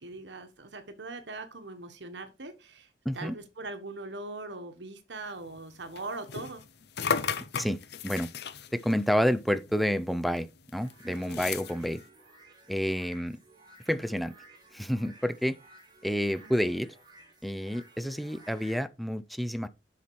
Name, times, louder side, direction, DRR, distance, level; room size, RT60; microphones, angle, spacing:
voice 1, 0.0-2.9 3.1-6.6 11.1-11.5 16.4-16.6, right 2 dB, 75° right, 1.3 m, -41 dB
voice 2, 3.0-3.3 7.6-8.3 8.7-10.5 10.7-12.0 12.7-13.4 13.9-14.3 14.7-15.6 16.0-16.9 17.4-19.7, equal, ahead, 0.5 m, -29 dB
sound 1, 5.5-10.1 10.4-12.0, left 6 dB, 65° left, 0.7 m, -36 dB
sound 2, 10.7-18.8, right 2 dB, 25° right, 3.5 m, -55 dB
7.3 x 5.9 x 4.6 m
head